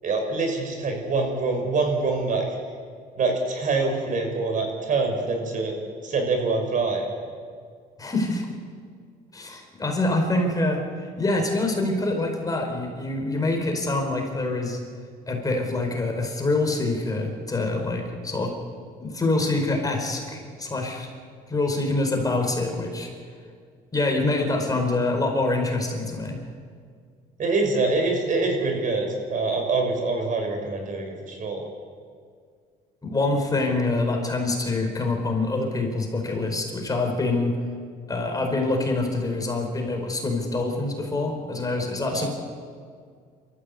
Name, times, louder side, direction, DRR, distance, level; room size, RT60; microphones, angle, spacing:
voice 1, 0.0-2.5 3.2-5.7 6.0-7.1 27.4-31.6 42.1-42.3, right 3 dB, 50° right, 3 dB, 5.8 m, -25 dB
voice 2, 8.0-8.4 9.3-14.8 15.3-18.5 19.0-21.1 21.5-23.1 23.9-26.4 33.0-37.5 38.1-42.3, left 2 dB, 20° left, 2 dB, 4.8 m, -25 dB
27.5 x 14.5 x 8.4 m, 2.1 s
cardioid pair, 110°, 17 cm